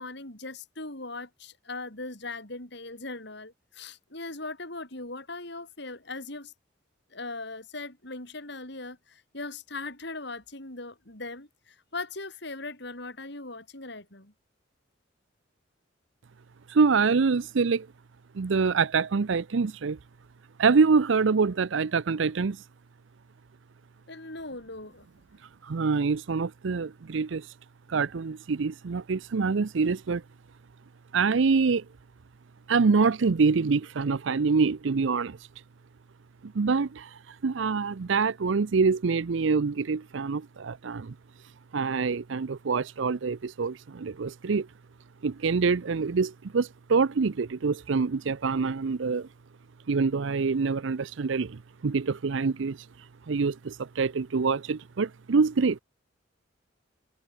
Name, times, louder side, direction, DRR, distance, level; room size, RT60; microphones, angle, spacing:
voice 1, 0.0-6.5 7.1-14.3 24.1-25.1, left 3 dB, 60° left, 6.5 m, -39 dB
voice 2, 16.7-17.9 18.3-20.0 20.6-22.6 25.6-27.5 27.9-30.2 31.1-31.9 32.7-35.4 36.4-37.1 37.4-41.1 41.7-44.7 45.2-49.3 49.9-52.8 53.3-55.8, right 4 dB, 75° right, 0.5 m, -25 dB
head